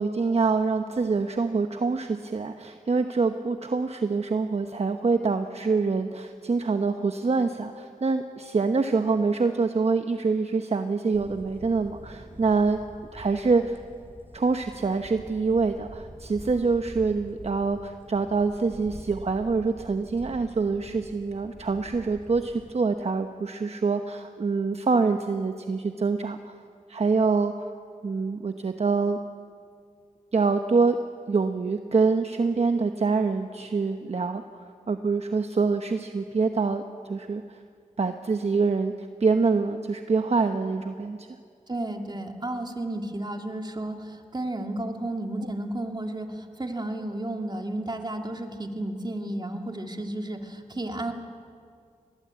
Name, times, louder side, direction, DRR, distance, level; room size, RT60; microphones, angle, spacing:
voice 1, 0.0-12.8 13.1-13.8 14.3-26.5 26.9-27.7 28.0-29.2 30.3-31.0 31.3-37.6 38.0-41.3, right 4 dB, 50° right, 7 dB, 1.0 m, -25 dB
sound 1, 11.1-22.7, right 1 dB, 15° right, 2.7 m, -46 dB
voice 2, 41.7-51.1, right 1 dB, 30° right, 4 dB, 2.5 m, -32 dB
22.5 x 18.5 x 8.4 m, 2.2 s
cardioid pair, 50°, 14 cm